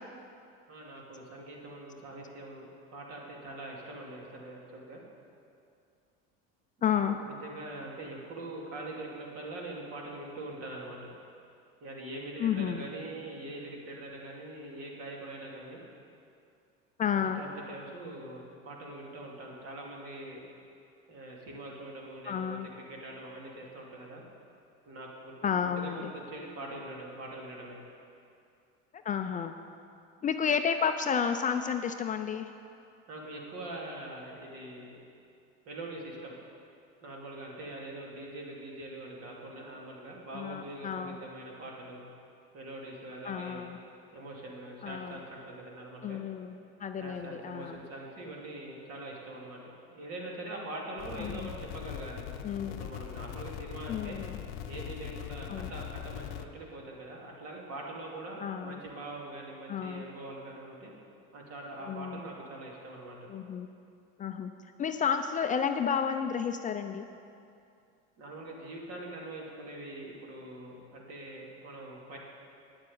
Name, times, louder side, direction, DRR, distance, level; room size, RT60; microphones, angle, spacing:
voice 1, 0.7-5.0 7.1-11.1 11.8-15.8 17.1-20.4 21.1-24.2 24.9-27.8 33.1-35.0 35.7-36.4 37.0-42.0 42.5-43.6 44.1-46.2 47.0-49.6 49.9-52.2 52.7-54.2 54.7-60.9 61.3-63.3 68.2-72.2, right 2 dB, 55° right, -2 dB, 2.7 m, -43 dB
voice 2, 6.8-7.2 12.4-12.8 17.0-17.4 22.3-22.7 25.4-26.1 29.0-29.5 30.2-32.5 40.3-41.2 43.2-43.8 44.8-45.2 46.0-46.5 46.8-47.8 51.2-51.5 52.4-52.9 53.9-54.4 55.5-55.7 58.4-58.8 59.7-60.1 61.8-62.2 63.3-63.8 64.2-64.5 64.8-67.1, left 7 dB, 25° left, 7 dB, 0.5 m, -31 dB
sound 1, 51.0-56.5, left 10 dB, 70° left, 0.7 m, -41 dB
9.5 x 7.6 x 8.6 m, 2.5 s
supercardioid pair, 120°, 29 cm